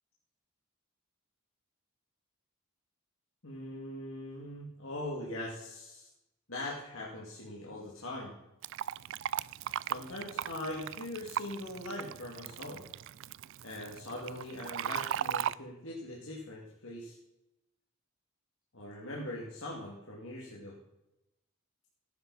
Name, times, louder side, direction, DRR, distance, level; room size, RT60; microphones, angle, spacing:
voice 1, 3.4-6.1 6.5-8.3 9.8-12.8 13.6-17.1 18.7-20.8, left 1 dB, 65° left, -4 dB, 2.5 m, -41 dB
Fill (with liquid), 8.6-15.5, right 10 dB, 60° right, 0.3 m, -37 dB
16.0 x 9.7 x 4.2 m, 0.91 s
head